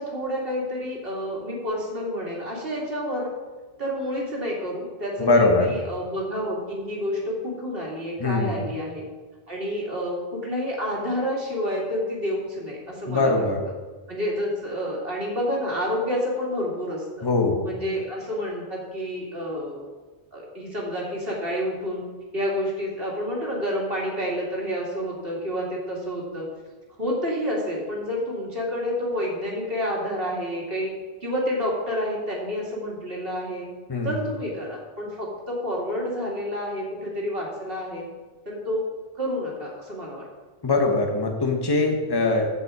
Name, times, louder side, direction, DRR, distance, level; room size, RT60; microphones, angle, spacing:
voice 1, 0.0-3.3 3.8-9.0 9.5-13.4 14.1-17.3 17.6-19.8 20.3-22.0 22.3-26.5 27.0-30.9 31.2-33.7 34.0-38.1 38.5-38.8 39.2-40.3, equal, 50° right, -3 dB, 2.6 m, -29 dB
voice 2, 5.2-5.7 8.2-8.6 13.1-13.6 17.2-17.6 33.9-34.1 40.6-42.5, left 3 dB, 20° left, 2 dB, 1.2 m, -21 dB
15.0 x 5.4 x 4.8 m, 1.3 s
omnidirectional pair, 1.2 m